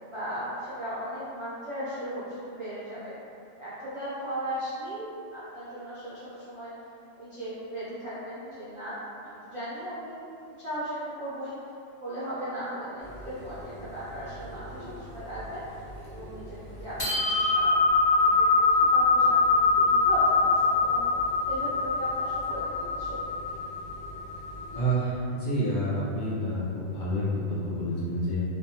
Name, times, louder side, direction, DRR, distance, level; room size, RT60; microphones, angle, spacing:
voice 1, 0.0-3.2 3.6-6.7 7.2-10.2 10.6-11.5 12.0-15.6 16.1-21.2 21.5-23.2, right 1 dB, 45° right, -12 dB, 0.4 m, -37 dB
sound 1, 13.0-15.0 15.3-15.4 15.8-16.4 16.8-24.9, left 3 dB, 30° left, 0.5 m, -24 dB
voice 2, 24.7-28.4, right 1 dB, 70° left, -7 dB, 1.0 m, -28 dB
2.6 x 2.2 x 2.7 m, 2.6 s
omnidirectional pair, 1.3 m